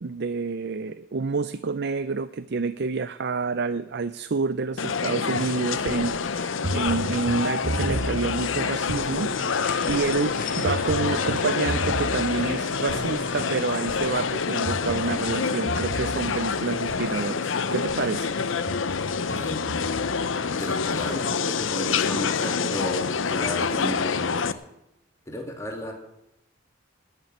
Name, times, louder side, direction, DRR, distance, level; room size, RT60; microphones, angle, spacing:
voice 1, 0.0-9.3 9.6-18.3, right 4 dB, 60° right, 12 dB, 0.5 m, -28 dB
sound 1, 4.8-24.5, left 5 dB, 90° left, 0.7 m, -27 dB
sound 2, 5.3-17.5 17.9-18.1 18.4-20.5 20.9-21.5 21.9-22.0, right 1 dB, 45° right, 1.0 m, -35 dB
sound 3, 9.2-16.0, left 6 dB, 45° left, 2.3 m, -42 dB
voice 2, 19.3-20.0 20.4-24.4 25.3-25.9, equal, 15° left, 2 dB, 2.7 m, -34 dB
19.0 x 6.9 x 9.4 m, 0.87 s
head